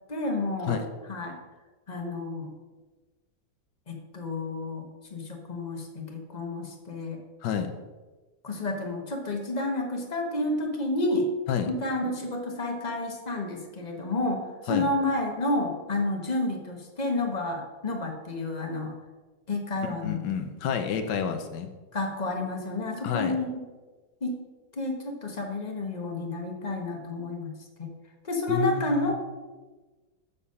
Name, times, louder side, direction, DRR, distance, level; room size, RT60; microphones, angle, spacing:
voice 1, 0.1-0.8 1.1-1.4 1.9-2.5 3.9-7.2 8.4-11.3 11.7-18.9 19.5-20.3 21.9-23.6 24.2-24.4 24.7-27.5 27.8-27.9 28.2-29.1, left 2 dB, 25° left, 2 dB, 1.1 m, -30 dB
voice 2, 7.4-7.7 11.5-11.7 14.7-14.9 20.0-21.7 23.0-23.4 28.5-29.1, left 7 dB, 70° left, 7 dB, 1.3 m, -29 dB
7.1 x 6.8 x 5.5 m, 1.2 s
omnidirectional pair, 2.1 m